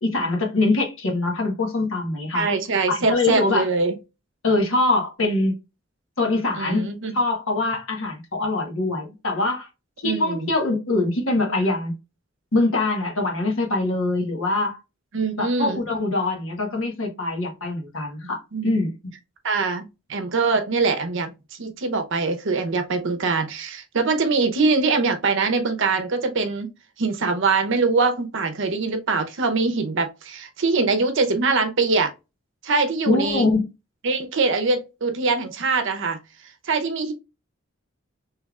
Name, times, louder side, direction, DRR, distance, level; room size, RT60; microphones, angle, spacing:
voice 1, 0.0-2.4 2.9-3.7 4.4-5.6 6.2-6.9 7.1-9.7 10.0-11.9 12.5-14.8 15.4-18.9 33.1-33.6, left 2 dB, 80° left, 1.3 m, -23 dB
voice 2, 2.3-3.9 6.6-7.2 10.0-10.5 15.1-15.8 18.5-18.7 19.4-26.7 27.0-32.1 32.6-33.4 34.0-36.2 36.7-37.1, right 4 dB, 65° right, 0.7 m, -23 dB
3.3 x 3.3 x 2.3 m
head